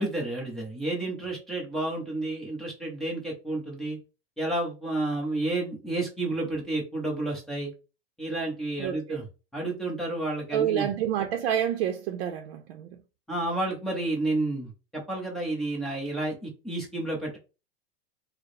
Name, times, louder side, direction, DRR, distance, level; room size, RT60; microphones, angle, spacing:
voice 1, 0.0-4.0 4.4-7.7 8.2-9.2 9.5-10.9 13.3-17.4, right 2 dB, ahead, 0.6 m, -31 dB
voice 2, 8.8-9.2 10.5-12.9, right 10 dB, 65° right, 0.5 m, -28 dB
4.5 x 2.0 x 3.2 m
supercardioid pair, 180°, 32 cm